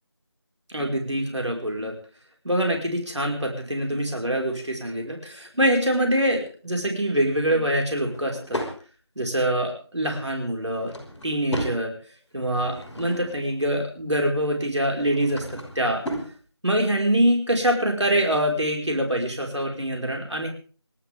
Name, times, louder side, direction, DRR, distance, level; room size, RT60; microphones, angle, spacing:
voice 1, 0.7-1.9 2.4-8.6 9.1-10.9 11.2-11.9 12.3-15.4 15.7-16.0 16.6-20.5, right 1 dB, 90° right, 1 dB, 5.2 m, -24 dB
Drawer open or close / Wood, 7.8-8.8 10.5-11.8 12.3-13.5 14.8-16.3, equal, 5° left, 2.6 m, -35 dB
28.0 x 12.5 x 3.6 m, 0.40 s
figure-of-eight pair, 170°, 15 cm